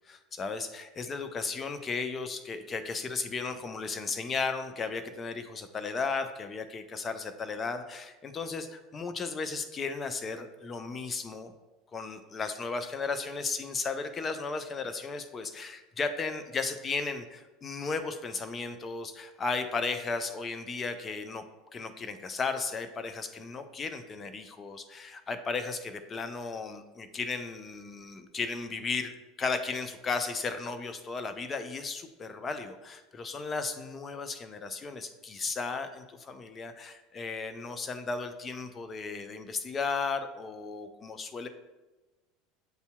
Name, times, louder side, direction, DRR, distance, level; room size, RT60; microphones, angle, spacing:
voice 1, 0.1-11.5 11.9-21.4 21.7-29.1 29.4-41.5, left 4 dB, 30° left, 8 dB, 0.5 m, -35 dB
8.0 x 2.7 x 2.2 m, 1.1 s
hypercardioid pair, 80°, 0 cm